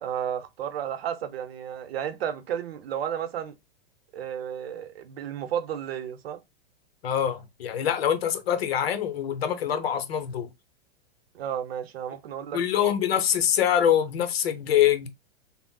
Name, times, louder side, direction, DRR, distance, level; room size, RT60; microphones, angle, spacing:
voice 1, 0.0-3.5 4.1-6.4 11.3-12.6, right 9 dB, 75° right, 0.7 m, -32 dB
voice 2, 7.0-10.5 12.5-15.1, left 9 dB, 80° left, 0.7 m, -24 dB
3.7 x 2.0 x 2.2 m
hypercardioid pair, 125°, 30 cm